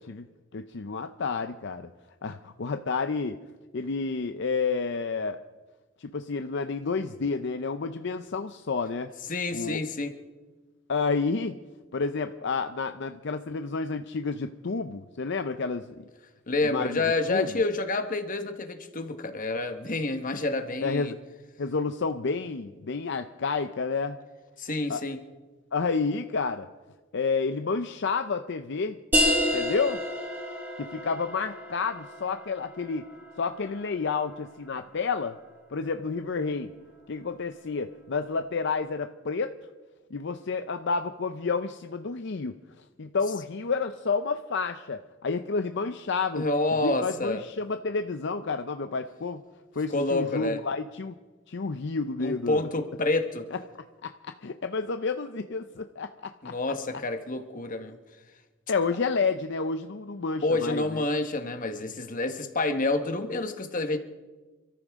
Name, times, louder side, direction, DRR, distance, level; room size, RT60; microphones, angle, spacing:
voice 1, 0.5-1.9 2.2-3.4 3.7-5.4 6.0-9.1 9.5-9.8 10.9-11.6 11.9-16.0 16.6-17.0 17.3-17.5 20.8-21.2 21.6-24.2 24.9-25.0 25.7-26.7 27.1-29.0 29.5-30.0 30.8-33.1 33.4-35.4 35.7-36.7 37.1-39.5 40.1-42.5 43.0-46.5 46.8-49.4 49.8-51.2 51.5-52.7 53.5-53.6 54.2-56.1 56.4-56.5 58.7-61.0, left 4 dB, 65° left, 8 dB, 0.6 m, -30 dB
voice 2, 9.3-10.2 16.5-21.1 24.6-25.2 46.3-47.4 49.9-50.6 52.2-53.5 56.4-58.0 60.4-64.0, left 2 dB, 45° left, 6 dB, 1.4 m, -28 dB
sound 1, 29.1-34.5, equal, 10° right, 5.0 m, -30 dB
28.0 x 14.0 x 3.7 m, 1.2 s
head